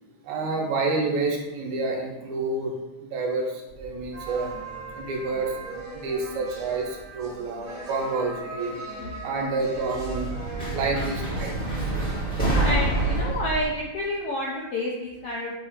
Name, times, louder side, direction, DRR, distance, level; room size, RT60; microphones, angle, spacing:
voice 1, 0.2-4.5 4.9-5.6 5.9-8.8 9.2-10.3 10.7-11.9, right 3 dB, 75° right, 0 dB, 2.2 m, -29 dB
sound 1, 3.7-5.7 6.0-6.7 7.8-7.9 9.5-13.6, right 2 dB, 5° left, 1.1 m, -28 dB
sound 2, 4.1-13.2, right 2 dB, 50° right, 0.6 m, -40 dB
voice 2, 12.4-15.5, left 1 dB, 75° left, -3 dB, 1.4 m, -29 dB
6.9 x 2.9 x 4.9 m, 0.99 s
omnidirectional pair, 3.6 m